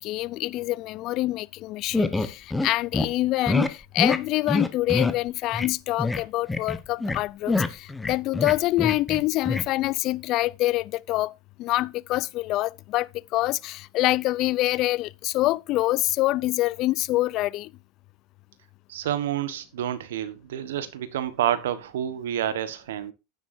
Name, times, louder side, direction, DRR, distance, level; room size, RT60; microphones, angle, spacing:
voice 1, 0.0-11.3 11.6-17.7, left 17 dB, 50° left, 0.4 m, -26 dB
sound 1, 1.9-2.7 2.9-3.1 3.5-3.7 4.0-4.2 4.5-5.2 5.5-5.7 6.0-6.2 6.5-7.2 7.5-9.2 9.4-9.7, left 2 dB, 10° left, 1.1 m, -25 dB
voice 2, 18.9-23.1, right 11 dB, 80° right, 1.3 m, -29 dB
11.0 x 9.6 x 2.7 m
hypercardioid pair, 95°, 0 cm